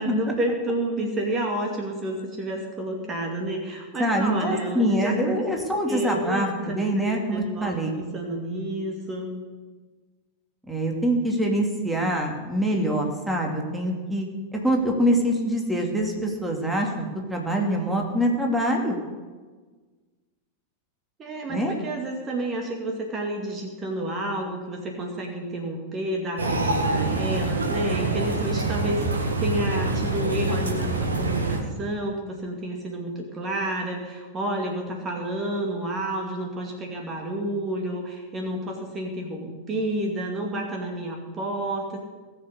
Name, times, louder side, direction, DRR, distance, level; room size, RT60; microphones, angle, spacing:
voice 1, 0.0-5.3 5.9-6.7 7.0-9.3 21.2-42.0, right 1 dB, 25° right, 1 dB, 2.4 m, -30 dB
voice 2, 4.0-7.9 10.7-14.3 14.5-19.0 21.5-21.7, equal, 5° right, 0 dB, 2.7 m, -24 dB
sound 1, 26.4-31.6, right 2 dB, 75° right, 2.1 m, -25 dB
19.0 x 6.7 x 8.2 m, 1.4 s
figure-of-eight pair, 90°, 0 cm